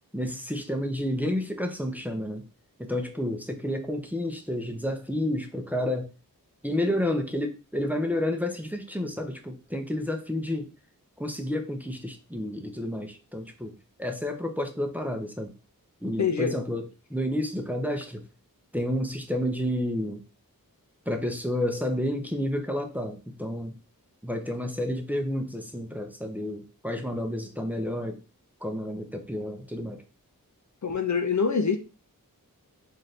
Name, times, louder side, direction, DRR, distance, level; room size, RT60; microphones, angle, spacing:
voice 1, 0.1-2.4 2.8-6.1 6.6-10.7 11.2-13.7 14.0-15.5 16.0-16.8 17.1-18.2 18.7-20.2 21.1-23.8 24.2-28.2 28.6-30.0, left 1 dB, 5° right, 0.7 m, -30 dB
voice 2, 16.2-16.5 30.8-31.8, left 5 dB, 55° left, 0.6 m, -25 dB
4.0 x 2.7 x 3.3 m
wide cardioid pair, 40°, 35 cm